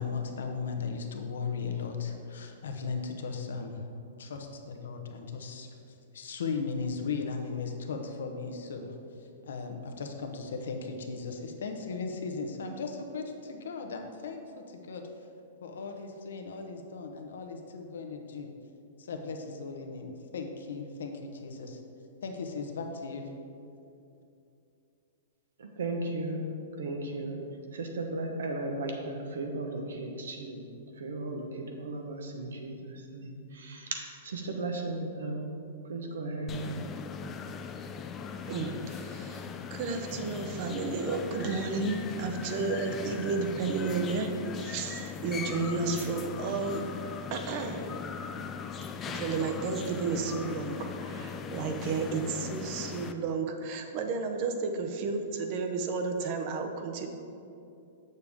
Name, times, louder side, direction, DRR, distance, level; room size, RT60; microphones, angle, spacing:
voice 1, 0.0-3.9 4.2-15.1 15.6-18.5 19.0-21.8 22.2-23.3, left 4 dB, 80° left, 4 dB, 0.8 m, -37 dB
voice 2, 25.6-26.5 26.8-27.4 27.7-30.6 31.0-34.0 34.2-35.5 35.8-36.8, right 2 dB, 85° right, 2 dB, 1.1 m, -35 dB
sound 1, 36.5-53.1, left 6 dB, 20° left, 0.4 m, -39 dB
voice 3, 38.5-46.8 47.3-47.9 49.0-57.1, right 4 dB, 40° right, 5 dB, 0.7 m, -32 dB
6.7 x 6.6 x 3.6 m, 2.7 s
hypercardioid pair, 140°, 0 cm